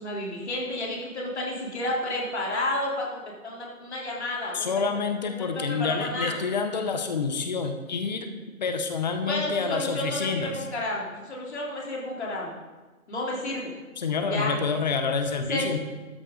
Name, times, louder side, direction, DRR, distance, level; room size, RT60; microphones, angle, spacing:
voice 1, 0.0-4.7 5.6-6.4 9.2-12.6 13.1-13.7 14.3-14.5 15.5-15.8, left 1 dB, 50° left, -3 dB, 3.5 m, -31 dB
voice 2, 4.5-8.3 8.6-10.7 14.0-15.8, left 5 dB, 30° left, 6 dB, 0.8 m, -28 dB
13.0 x 9.6 x 3.9 m, 1.2 s
figure-of-eight pair, 150°, 43 cm